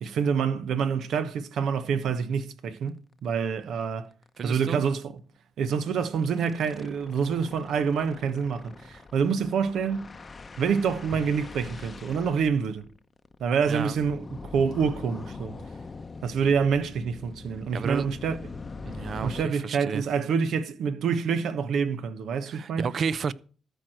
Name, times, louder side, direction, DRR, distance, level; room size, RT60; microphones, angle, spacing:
voice 1, 0.0-4.1 4.4-5.2 5.6-10.1 10.6-12.9 13.4-15.6 16.2-18.4 19.2-22.9, right 6 dB, 70° right, 1.0 m, -27 dB
sound 1, 2.8-2.9 3.2-3.3 3.6-3.8 4.1-4.3 5.6-19.4, left 4 dB, 30° left, 0.7 m, -43 dB
voice 2, 4.4-4.8 13.7-14.0 17.7-18.1 18.9-20.0 22.5-23.3, right 6 dB, 50° right, 0.6 m, -31 dB
13.5 x 4.6 x 7.8 m
cardioid pair, 90°, 0 cm